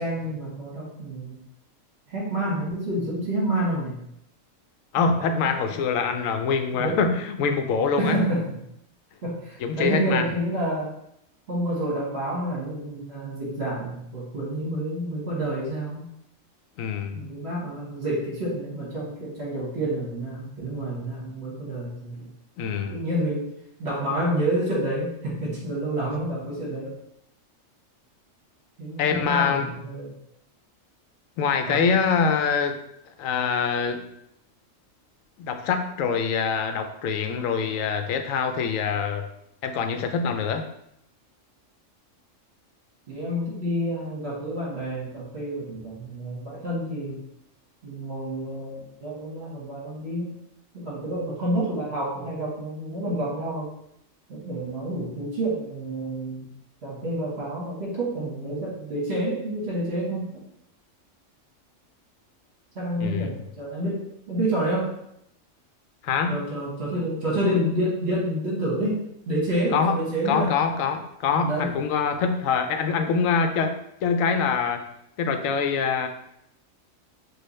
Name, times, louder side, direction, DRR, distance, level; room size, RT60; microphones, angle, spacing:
voice 1, 0.0-1.4 2.1-4.0 4.9-5.5 6.7-7.0 8.0-8.6 9.2-10.9 11.5-16.1 17.1-22.3 22.6-23.5 23.8-26.9 28.8-30.1 31.6-31.9 43.1-47.2 47.8-50.3 50.7-53.7 54.3-56.5 56.8-60.4 62.7-64.9 66.3-70.5 71.4-71.7, right 1 dB, 55° right, -5 dB, 1.6 m, -29 dB
voice 2, 4.9-8.2 9.6-10.3 16.8-17.2 22.6-23.0 29.0-29.7 31.4-32.8 33.2-34.0 35.4-39.3 39.6-40.6 63.0-63.3 66.0-66.4 69.7-69.9 70.3-74.9 75.2-76.1, left 5 dB, 85° left, 7 dB, 1.0 m, -24 dB
6.2 x 2.4 x 3.1 m, 0.77 s
omnidirectional pair, 1.4 m